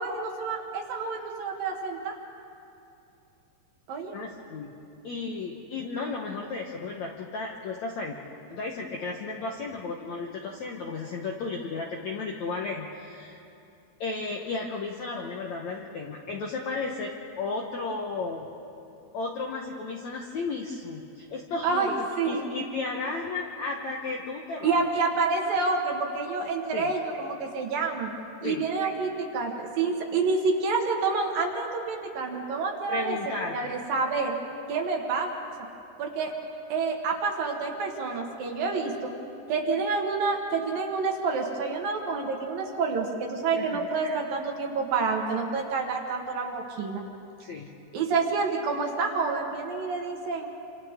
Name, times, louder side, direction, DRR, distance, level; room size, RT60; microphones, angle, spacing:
voice 1, 0.0-2.2 3.9-4.1 21.6-22.7 24.6-28.1 28.4-33.2 33.5-34.3 34.7-35.3 36.0-36.3 36.7-39.1 39.5-47.0 47.9-50.5, right 4 dB, 65° right, 1 dB, 2.9 m, -28 dB
voice 2, 4.1-4.7 5.0-8.2 8.5-13.4 14.0-18.5 19.1-24.7 26.7-26.9 28.4-28.6 32.9-33.7 43.5-43.9 47.4-47.7, left 3 dB, 70° left, 0 dB, 1.7 m, -34 dB
28.0 x 27.0 x 3.7 m, 2.7 s
omnidirectional pair, 4.9 m